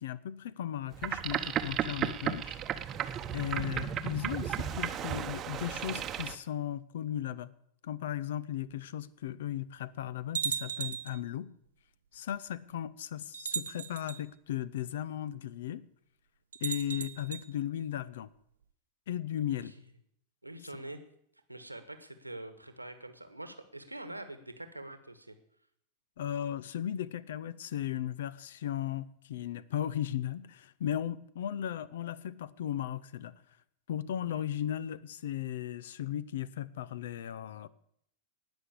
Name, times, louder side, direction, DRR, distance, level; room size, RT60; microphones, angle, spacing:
voice 1, 0.0-2.6 3.3-7.5 7.8-11.5 12.1-15.8 16.6-18.3 19.1-19.7 26.2-33.3 33.9-37.7, left 11 dB, 60° left, 21 dB, 0.6 m, -36 dB
Boat Water vehicle, 0.9-6.3, right 9 dB, 30° right, 0.9 m, -34 dB
sound 1, 8.7-8.8 9.5-9.6 10.3-11.2 12.3-12.4 13.3-14.2 16.5-17.4, right 7 dB, 70° right, 0.8 m, -36 dB
voice 2, 20.4-21.0 21.5-25.3 34.3-34.4, right 1 dB, 85° right, 10 dB, 1.4 m, -45 dB
19.0 x 6.3 x 8.3 m, 0.73 s
figure-of-eight pair, 90°, 0 cm